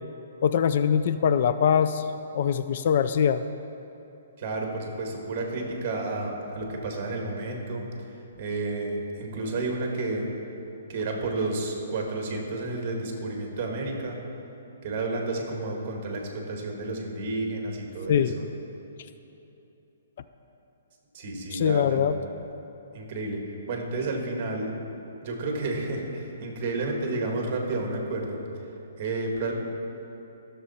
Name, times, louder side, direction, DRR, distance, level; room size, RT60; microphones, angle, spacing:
voice 1, 0.4-2.1 2.3-3.4 18.1-18.3 21.5-22.2, left 8 dB, 45° left, 11 dB, 0.3 m, -22 dB
voice 2, 4.4-7.8 8.4-10.3 10.9-14.2 14.8-18.4 21.1-22.1 22.9-23.4 23.7-24.7 25.2-28.4 29.0-29.5, right 2 dB, 35° right, 1 dB, 1.6 m, -31 dB
14.0 x 6.7 x 4.2 m, 2.9 s
hypercardioid pair, 165°, 0 cm